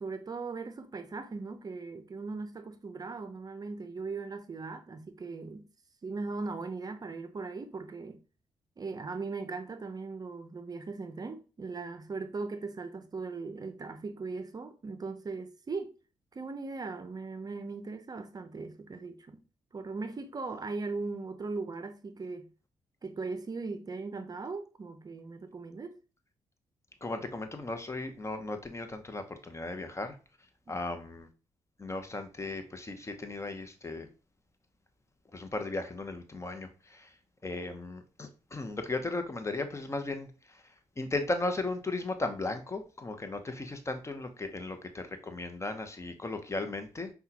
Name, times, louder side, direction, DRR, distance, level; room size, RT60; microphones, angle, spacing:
voice 1, 0.0-5.7 6.0-8.2 8.8-15.9 16.3-19.4 19.7-22.5 23.0-26.0 30.7-30.8, right 4 dB, 35° right, 0.5 m, -39 dB
voice 2, 27.0-30.2 30.7-31.3 31.8-34.1 35.3-37.1 37.4-40.3 41.0-47.1, left 2 dB, 25° left, 0.8 m, -36 dB
5.5 x 2.3 x 2.8 m
supercardioid pair, 50°, 11 cm